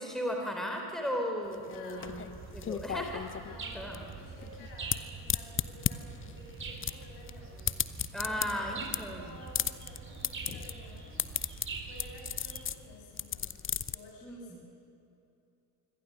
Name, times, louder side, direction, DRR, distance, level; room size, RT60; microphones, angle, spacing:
voice 1, 0.0-2.2 2.5-3.3 3.7-4.0 8.1-9.4 14.2-14.4, equal, ahead, 2 dB, 3.8 m, -35 dB
voice 2, 1.4-2.3 3.4-7.7 8.1-11.3 11.8-13.5 13.9-14.6, left 1 dB, 60° left, 0 dB, 7.6 m, -52 dB
sound 1, 1.5-14.0, left 9 dB, 25° left, 0.9 m, -35 dB
sound 2, 2.0-12.8, right 4 dB, 25° right, 3.9 m, -45 dB
25.5 x 25.0 x 6.8 m, 2.8 s
figure-of-eight pair, 55°, 47 cm